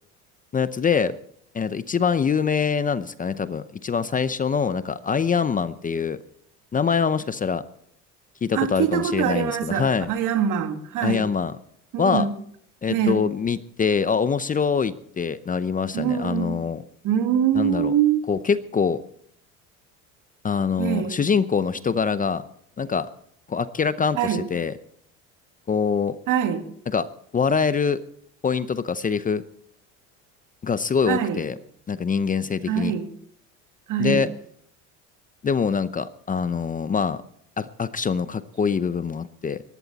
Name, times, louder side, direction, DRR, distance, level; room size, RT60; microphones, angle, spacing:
voice 1, 0.5-1.1 1.5-6.2 6.7-7.6 8.4-10.1 11.0-11.5 12.0-12.3 12.8-16.8 17.5-17.9 18.3-19.0 20.4-22.4 22.8-23.1 23.5-24.7 25.7-26.2 26.9-27.1 27.3-28.0 28.4-29.4 30.6-31.5 31.9-32.9 34.0-34.3 35.4-37.2 37.6-39.6, left 6 dB, 25° left, 14 dB, 0.7 m, -24 dB
voice 2, 8.5-11.3 11.9-12.3 12.9-13.2 15.9-16.6 17.0-18.2 20.8-21.2 24.2-24.4 26.3-26.6 31.1-31.4 32.7-33.1 33.9-34.2, right 8 dB, 60° right, 6 dB, 2.6 m, -23 dB
19.0 x 14.5 x 4.1 m, 0.66 s
supercardioid pair, 95°, 35 cm